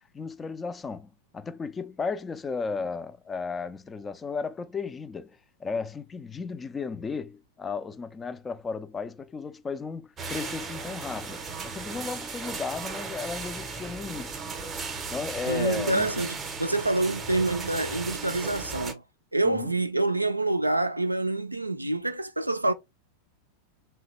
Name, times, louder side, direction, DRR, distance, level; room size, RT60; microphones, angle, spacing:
voice 1, 0.1-14.4 15.1-16.2 19.4-19.7, left 4 dB, 15° left, 0.3 m, -35 dB
sound 1, 10.2-18.9, right 4 dB, 20° right, 0.6 m, -36 dB
voice 2, 15.5-19.0 19.3-22.7, right 2 dB, 85° right, 0.3 m, -27 dB
2.8 x 2.2 x 2.9 m
figure-of-eight pair, 90°, 0 cm